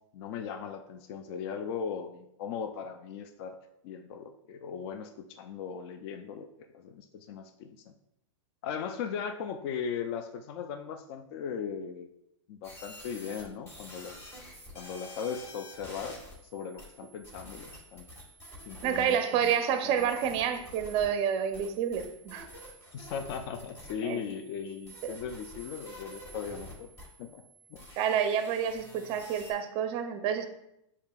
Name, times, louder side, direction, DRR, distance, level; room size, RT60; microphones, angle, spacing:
voice 1, 0.1-6.5 6.7-7.8 8.6-12.1 12.5-14.3 14.7-16.2 16.5-18.1 18.7-19.5 19.8-20.1 22.9-26.9 27.2-27.4 27.7-27.9, left 7 dB, 50° left, 6 dB, 0.4 m, -38 dB
sound 1, 12.6-29.5, equal, 15° left, 1.4 m, -49 dB
voice 2, 18.8-22.5 24.0-24.2 28.0-30.5, right 8 dB, 35° right, 8 dB, 0.5 m, -29 dB
6.6 x 2.8 x 2.3 m, 0.81 s
hypercardioid pair, 125°, 16 cm